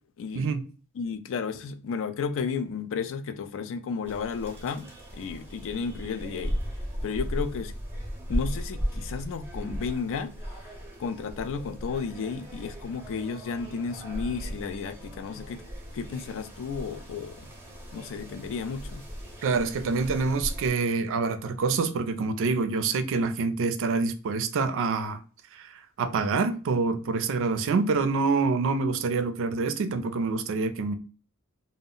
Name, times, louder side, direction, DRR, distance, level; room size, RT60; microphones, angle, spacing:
voice 1, 0.9-4.9 5.2-6.6 7.0-7.7 8.3-10.3 10.6-10.7 11.0-15.6 15.9-17.5 17.9-19.0, left 5 dB, 60° left, 0.4 m, -33 dB
sound 1, 4.0-20.7, equal, 10° right, 0.6 m, -37 dB
voice 2, 19.4-25.2 25.5-30.9, right 4 dB, 60° right, 0.4 m, -26 dB
2.0 x 2.0 x 3.7 m
head